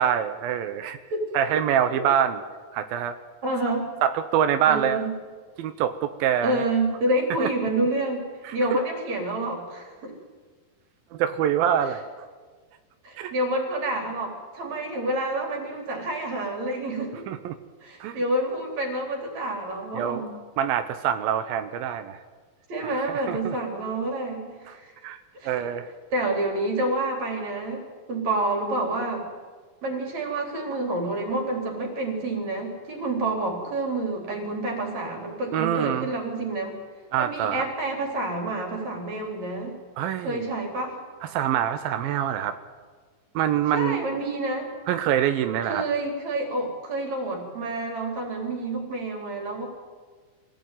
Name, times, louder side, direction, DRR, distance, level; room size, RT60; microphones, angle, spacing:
voice 1, 0.0-1.0 1.3-2.4 2.7-3.2 4.0-5.1 5.6-6.6 7.4-7.5 8.4-8.8 11.1-12.0 13.2-13.3 17.3-17.6 18.0-18.2 19.9-20.2 20.6-22.2 22.8-23.6 24.7-24.8 25.0-25.9 35.5-36.1 37.1-37.6 40.0-40.4 41.3-42.6 43.4-44.0 44.9-45.9, right 9 dB, 90° right, 9 dB, 2.7 m, -25 dB
voice 2, 3.4-3.9 4.7-5.1 6.4-8.2 8.5-10.2 13.0-17.3 17.8-20.3 22.7-24.9 25.3-25.7 26.1-27.8 28.1-29.2 29.8-36.7 37.2-39.8 40.2-41.0 43.7-44.7 45.6-49.7, right 2 dB, 50° right, 2 dB, 4.8 m, -28 dB
24.0 x 16.0 x 9.2 m, 1.5 s
omnidirectional pair, 4.1 m